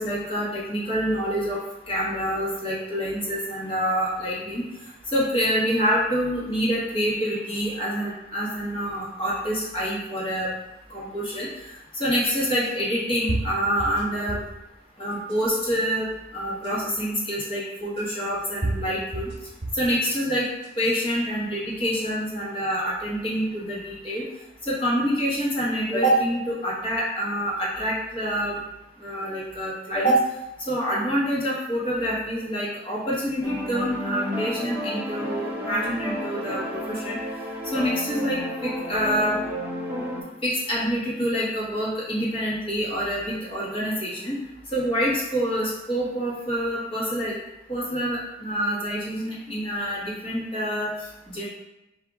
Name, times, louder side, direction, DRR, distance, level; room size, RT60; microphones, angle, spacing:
voice 1, 0.0-1.6 1.9-4.6 5.1-10.5 10.9-11.5 12.0-14.4 15.0-16.1 16.3-19.3 19.7-20.4 20.8-24.2 24.7-28.6 29.0-30.2 30.7-37.2 37.7-39.4 40.4-44.4 44.7-47.3 47.7-50.9 51.3-51.5, equal, 30° left, -6 dB, 1.4 m, -26 dB
sound 1, 11.3-11.4 12.6-12.7 13.3-14.6 15.1-15.7 16.6-16.7 18.0-18.1 18.6-19.9 20.4-21.0, right 2 dB, 65° right, 1.1 m, -31 dB
sound 2, 33.4-40.2, equal, 10° right, 0.7 m, -31 dB
5.0 x 2.7 x 3.7 m, 0.94 s
head